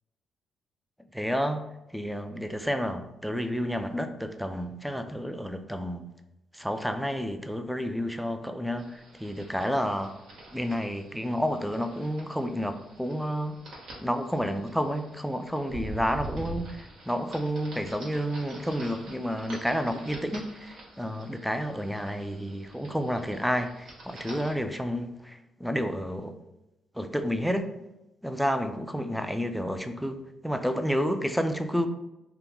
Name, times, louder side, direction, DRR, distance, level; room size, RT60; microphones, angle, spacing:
voice 1, 1.1-1.6 1.9-6.0 6.5-10.1 10.5-13.5 14.0-26.3 27.0-27.7 28.2-30.2 30.4-31.9, equal, ahead, 7 dB, 0.3 m, -30 dB
sound 1, 8.8-24.5, right 1 dB, 80° right, 1.0 m, -45 dB
2.9 x 2.2 x 3.5 m, 0.93 s
cardioid pair, 90°, 0 cm